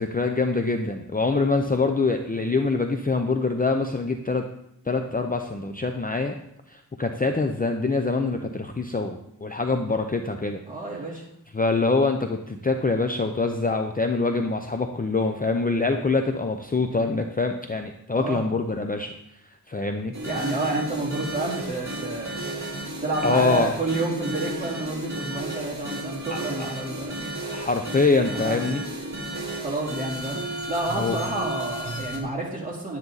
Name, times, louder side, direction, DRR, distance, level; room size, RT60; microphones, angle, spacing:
voice 1, 0.0-4.4 4.9-6.4 6.7-10.6 11.5-19.2 19.7-20.1 23.2-23.7 26.3-26.7 27.5-28.8 30.9-31.2, left 3 dB, 25° left, 5 dB, 0.6 m, -25 dB
voice 2, 10.7-11.2 18.1-18.5 20.2-22.4 23.0-27.2 28.3-28.6 29.6-33.0, right 2 dB, 20° right, -4 dB, 3.3 m, -29 dB
sound 1, 20.1-32.2, right 1 dB, 45° right, 2.5 m, -33 dB
11.0 x 9.8 x 4.0 m, 0.76 s
wide cardioid pair, 115°, 38 cm